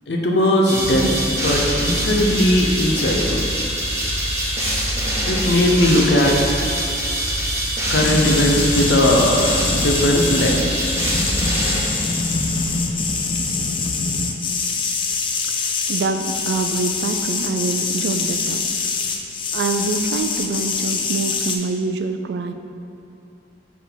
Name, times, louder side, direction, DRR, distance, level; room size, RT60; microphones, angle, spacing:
voice 1, 0.1-3.4 5.3-6.4 7.9-10.8, left 1 dB, 75° left, 0 dB, 0.7 m, -18 dB
Death Metal Drums, 0.6-12.5, right 1 dB, 15° right, 1.2 m, -23 dB
sound 1, 8.0-21.6, left 4 dB, 30° left, 0.4 m, -24 dB
voice 2, 15.9-18.6 19.5-22.5, right 3 dB, 70° right, 8 dB, 0.3 m, -25 dB
4.7 x 3.6 x 5.6 m, 2.7 s
head